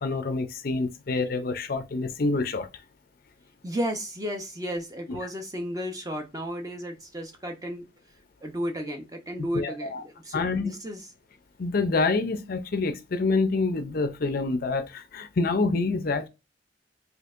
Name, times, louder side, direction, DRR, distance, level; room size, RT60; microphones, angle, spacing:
voice 1, 0.0-2.7 5.1-5.2 9.5-10.0 10.3-10.7 11.6-16.3, left 3 dB, 50° left, 0.5 m, -27 dB
voice 2, 3.6-7.8 8.4-11.1, equal, 20° right, 0.7 m, -33 dB
4.4 x 2.7 x 2.5 m
head